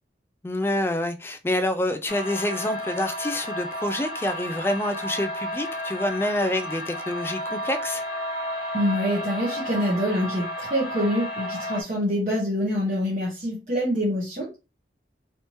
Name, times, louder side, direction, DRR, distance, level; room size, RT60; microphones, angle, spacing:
voice 1, 0.4-8.0, left 1 dB, 15° left, 0.3 m, -27 dB
sound 1, 2.1-11.8, left 1 dB, 70° left, 1.0 m, -32 dB
voice 2, 8.7-14.6, equal, 40° right, 1.0 m, -25 dB
3.3 x 2.8 x 3.0 m
head